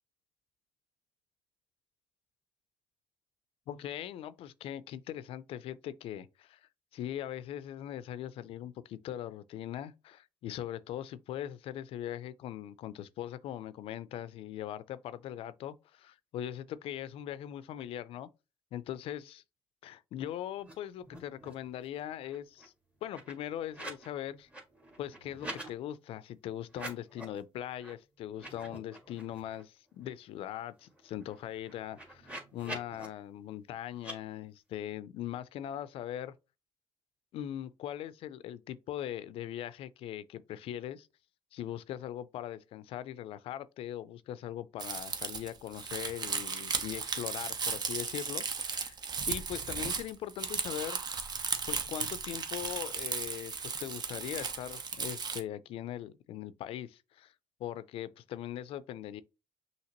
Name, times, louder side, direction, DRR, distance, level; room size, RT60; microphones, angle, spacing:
voice 1, 3.7-6.6 6.9-18.3 18.7-19.4 19.8-22.7 23.0-24.5 25.0-36.3 37.3-41.1 41.5-49.0 49.3-51.0 51.7-57.3 57.6-59.2, left 11 dB, 80° left, 0.4 m, -40 dB
sound 1, 20.6-20.7 21.0-21.7 22.0-24.1 24.4-25.7 26.6-27.4 27.8-27.9 28.3-29.6 30.0-30.1 30.4-33.1 34.0-34.2, right 1 dB, 15° right, 1.6 m, -46 dB
Crumpling crinkling, 44.8-55.4, right 5 dB, 45° right, 0.8 m, -36 dB
5.7 x 2.9 x 2.9 m
cardioid pair, 95°, 10 cm